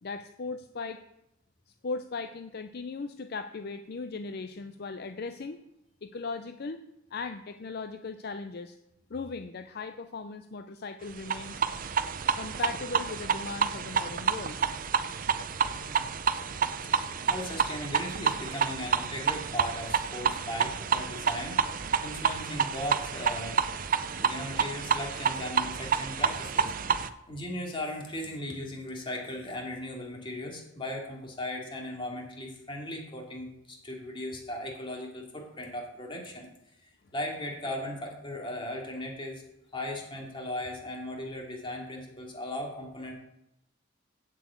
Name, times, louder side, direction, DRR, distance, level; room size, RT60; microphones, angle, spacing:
voice 1, 0.0-1.0 1.8-5.6 6.0-6.8 7.1-8.8 9.1-11.6 12.4-14.6 15.7-16.2, left 4 dB, 55° left, 9 dB, 0.5 m, -38 dB
sound 1, 11.2-27.1, right 6 dB, 45° right, 0.5 m, -29 dB
voice 2, 16.9-23.6 24.1-26.7 27.3-36.5 36.8-39.4 39.7-43.1, left 1 dB, 25° left, 0 dB, 2.6 m, -37 dB
8.4 x 7.5 x 8.4 m, 0.84 s
head